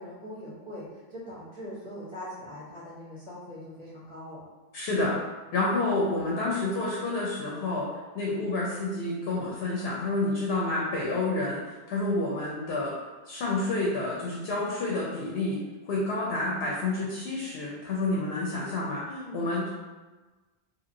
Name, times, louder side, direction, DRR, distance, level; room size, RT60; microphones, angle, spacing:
voice 1, 0.0-4.4 6.3-6.8 19.0-19.5, equal, 30° right, -11 dB, 1.0 m, -41 dB
voice 2, 4.7-5.2 5.5-12.9 13.3-15.6 15.9-19.0 19.3-19.7, left 2 dB, 80° left, -4 dB, 0.8 m, -29 dB
2.9 x 2.8 x 2.5 m, 1.3 s
omnidirectional pair, 1.0 m